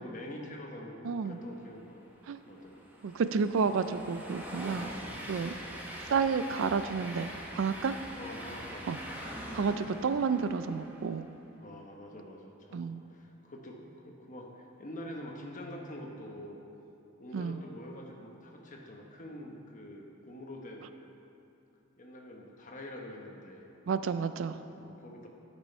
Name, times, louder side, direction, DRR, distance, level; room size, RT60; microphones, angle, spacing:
voice 1, 0.0-2.0 2.5-2.8 8.2-8.9 11.6-16.6 17.2-20.9 22.0-23.7 24.8-25.3, left 1 dB, 40° left, 1 dB, 1.0 m, -45 dB
voice 2, 1.0-1.4 2.3-2.4 3.0-4.9 5.3-5.5 6.1-7.3 7.6-8.0 8.9-9.0 9.5-11.3 12.7-13.0 17.3-17.6 23.9-24.6, right 5 dB, 70° right, 11 dB, 0.4 m, -30 dB
Train, 1.9-11.3, equal, 10° right, 1.0 m, -43 dB
12.0 x 6.2 x 4.4 m, 2.8 s
head